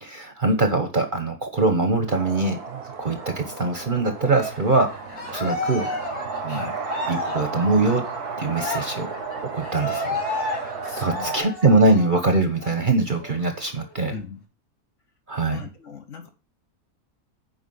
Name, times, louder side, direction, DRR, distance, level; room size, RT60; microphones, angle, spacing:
voice 1, 0.0-4.9 5.3-5.9 6.4-6.7 7.1-8.0 8.4-9.1 9.5-10.1 10.6-14.1 15.3-15.6, right 2 dB, 35° right, 5 dB, 1.1 m, -22 dB
sound 1, 2.1-11.4, right 5 dB, 85° right, 1.7 m, -34 dB
Cheering, 4.2-12.2 12.6-12.8 13.1-14.1, left 2 dB, 85° left, 3.0 m, -32 dB
voice 2, 6.5-6.8 10.1-10.3 10.8-11.3 14.1-14.4 15.5-16.3, left 5 dB, 55° left, 4 dB, 1.5 m, -39 dB
8.1 x 5.0 x 5.5 m, 0.33 s
omnidirectional pair, 1.6 m